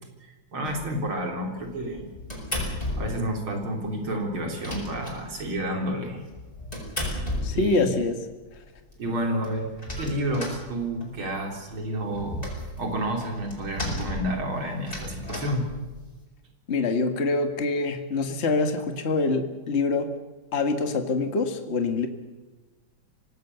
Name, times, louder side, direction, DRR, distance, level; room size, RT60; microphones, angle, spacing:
voice 1, 0.5-2.1 2.6-6.2 7.5-7.9 9.0-9.7 10.0-12.5 12.8-15.7, right 1 dB, 75° right, 2 dB, 4.6 m, -30 dB
sound 1, 0.6-1.1 1.6-3.3 3.6-3.7 4.0-4.1 4.3-5.7 6.2-8.0 8.5-8.6 8.9-9.0 9.2-11.3 11.6-16.2, left 1 dB, 15° left, 6.3 m, -34 dB
voice 2, 7.4-8.2 16.7-20.1 20.5-22.1, left 3 dB, 35° left, 6 dB, 1.8 m, -25 dB
25.5 x 18.5 x 6.8 m, 1.2 s
omnidirectional pair, 2.3 m